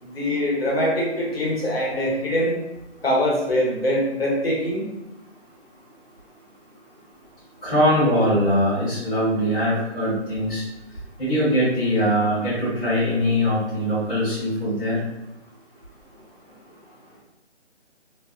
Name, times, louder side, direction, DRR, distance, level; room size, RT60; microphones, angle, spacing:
voice 1, 0.0-2.5 3.0-4.9, equal, 55° left, -3 dB, 0.9 m, -23 dB
voice 2, 7.6-10.6 11.2-15.0, equal, 15° left, -20 dB, 0.8 m, -22 dB
2.6 x 2.2 x 2.3 m, 0.90 s
figure-of-eight pair, 170°, 36 cm